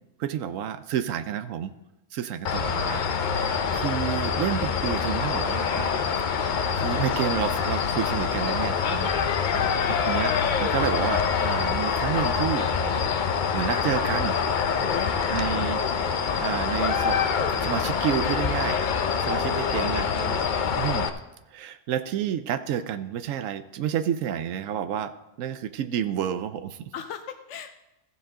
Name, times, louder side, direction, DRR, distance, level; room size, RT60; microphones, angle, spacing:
voice 1, 0.2-1.7 2.1-3.0 3.3-6.0 6.4-9.1 10.1-13.1 13.5-14.4 15.3-15.8 16.4-17.2 17.6-18.8 19.2-20.4 20.8-21.1 21.5-26.8, right 9 dB, 85° right, 12 dB, 1.0 m, -30 dB
sound 1, 2.4-21.1, left 6 dB, 50° left, 0.6 m, -25 dB
voice 2, 14.8-15.7 19.3-19.7 26.9-27.7, left 9 dB, 75° left, 7 dB, 0.9 m, -39 dB
14.5 x 7.5 x 3.8 m, 0.96 s
omnidirectional pair, 1.3 m